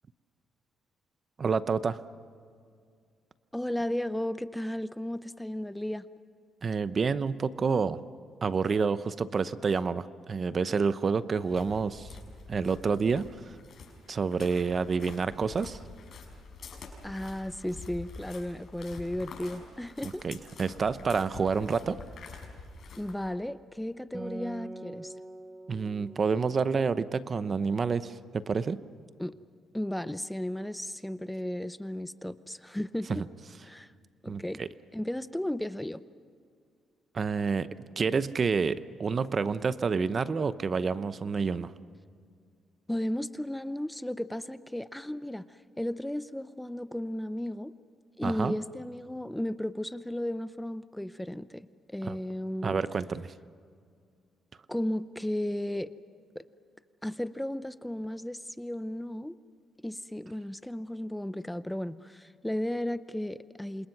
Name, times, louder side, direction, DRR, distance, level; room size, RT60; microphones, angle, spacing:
voice 1, 1.4-2.0 6.6-8.0 8.4-12.1 12.5-13.6 14.1-15.8 20.0-22.0 25.7-28.8 33.1-33.3 34.3-34.7 37.1-37.7 38.0-41.7 48.2-48.5 52.0-52.2 52.6-53.3, right 5 dB, 40° right, 14 dB, 0.8 m, -28 dB
voice 2, 3.5-6.1 17.0-20.2 23.0-25.1 29.2-29.3 29.7-33.2 33.6-33.9 34.2-34.6 34.9-36.0 42.9-47.7 48.2-51.7 51.9-52.8 54.7-55.9 56.3-56.4 57.0-59.4 59.8-63.9, left 1 dB, 5° left, 14 dB, 0.6 m, -34 dB
sound 1, 11.4-23.3, left 4 dB, 60° left, 5.9 m, -47 dB
Acoustic guitar, 24.1-27.9, right 2 dB, 20° right, 1.7 m, -45 dB
28.5 x 27.0 x 6.0 m, 2.2 s
cardioid pair, 90°, 0 cm